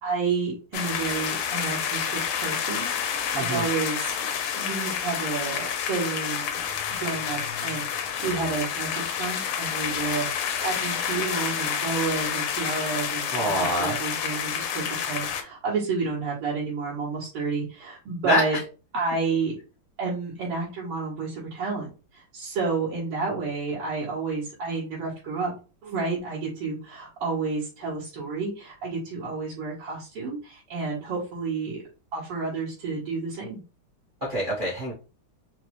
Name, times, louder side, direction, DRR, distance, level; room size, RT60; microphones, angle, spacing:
voice 1, 0.0-4.2 4.6-6.6 7.0-18.6 18.9-19.5 20.0-25.5 25.8-31.8 32.1-33.6, right 4 dB, 90° right, -5 dB, 2.0 m, -30 dB
sound 1, 0.7-15.4, left 8 dB, 85° left, 1.5 m, -29 dB
voice 2, 3.3-3.6 13.3-13.9 18.2-18.5 34.2-34.9, equal, 55° right, -5 dB, 0.5 m, -25 dB
4.6 x 2.0 x 2.9 m, 0.33 s
omnidirectional pair, 2.4 m